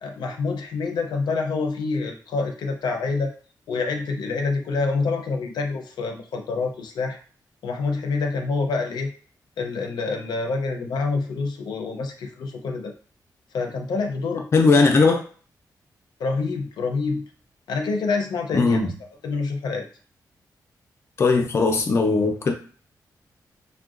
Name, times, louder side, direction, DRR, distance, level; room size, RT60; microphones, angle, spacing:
voice 1, 0.0-3.3 3.7-7.2 7.6-9.1 9.6-12.9 13.5-14.8 16.2-17.3 17.7-18.9 19.2-19.9, left 4 dB, 90° left, 4 dB, 0.5 m, -27 dB
voice 2, 14.5-15.2 18.5-18.9 21.2-22.5, left 4 dB, 35° left, 3 dB, 0.4 m, -18 dB
3.7 x 2.2 x 2.4 m, 0.42 s
wide cardioid pair, 155°, 7 cm